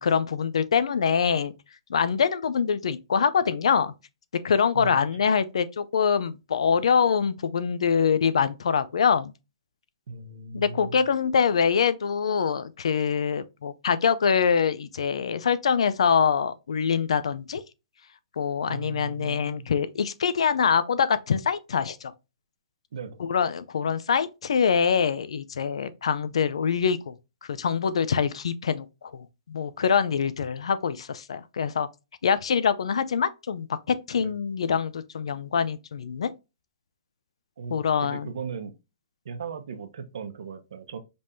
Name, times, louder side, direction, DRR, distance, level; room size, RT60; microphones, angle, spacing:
voice 1, 0.0-1.5 1.9-3.9 4.4-9.3 10.5-17.6 18.4-22.1 23.2-27.2 27.4-31.9 32.2-36.3 37.7-38.3, left 6 dB, 80° left, 0.5 m, -24 dB
voice 2, 10.1-11.0 18.7-19.6 22.9-23.2 34.2-34.3 37.6-38.7 39.2-41.0, right 5 dB, 65° right, 1.0 m, -37 dB
5.3 x 3.5 x 2.7 m
hypercardioid pair, 175°, 3 cm